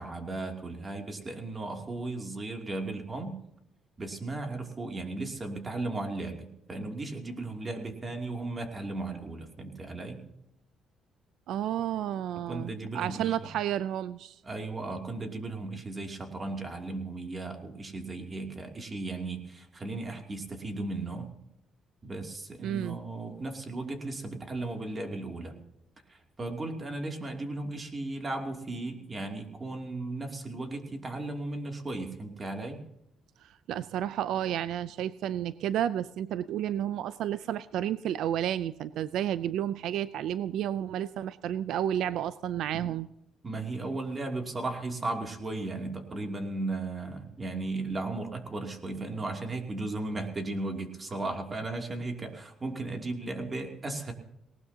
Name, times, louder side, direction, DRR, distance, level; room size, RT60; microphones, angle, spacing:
voice 1, 0.0-3.4 4.0-10.2 12.3-13.5 14.4-21.3 22.0-25.6 26.1-32.8 42.7-42.9 43.4-54.1, right 2 dB, 25° right, 3 dB, 2.7 m, -36 dB
voice 2, 11.5-14.4 22.6-23.0 33.4-43.1, right 11 dB, 80° right, 15 dB, 0.4 m, -31 dB
19.0 x 19.0 x 2.8 m, 0.81 s
cardioid pair, 100°, 0 cm